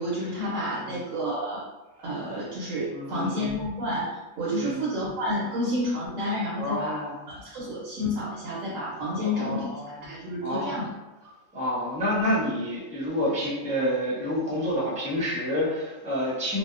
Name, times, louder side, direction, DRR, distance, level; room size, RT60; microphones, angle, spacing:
voice 1, 0.0-1.6 2.0-9.7 10.0-10.9, left 1 dB, 80° right, -6 dB, 1.0 m, -30 dB
voice 2, 2.9-3.5 4.5-4.8 6.6-7.1 9.1-10.8 11.5-16.6, equal, 10° right, -8 dB, 0.6 m, -29 dB
2.7 x 2.0 x 2.3 m, 1.1 s
omnidirectional pair, 1.3 m